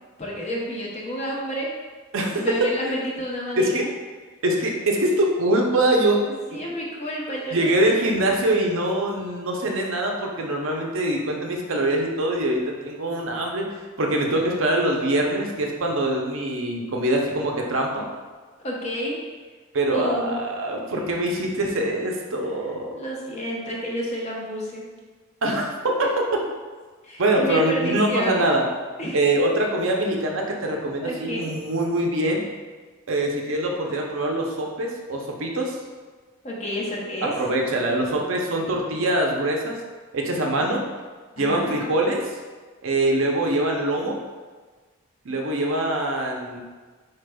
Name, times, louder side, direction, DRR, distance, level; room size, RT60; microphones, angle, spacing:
voice 1, 0.2-1.7 2.4-3.9 6.5-7.7 8.0-8.1 18.6-19.2 19.9-20.4 22.9-24.8 27.0-28.5 29.0-29.2 31.0-31.6 36.4-37.3 40.6-40.8 41.4-41.8, equal, 30° left, -3 dB, 0.7 m, -30 dB
voice 2, 2.1-2.4 2.8-3.0 3.6-3.9 4.4-6.2 6.5-6.6 7.5-13.7 14.0-18.1 19.7-22.9 25.4-26.1 27.2-28.6 29.1-32.4 33.1-35.8 37.2-39.8 40.1-40.8 41.4-42.2 42.8-44.2 45.2-46.6, right 1 dB, 60° right, 1 dB, 0.6 m, -23 dB
4.8 x 4.4 x 2.2 m, 1.4 s
head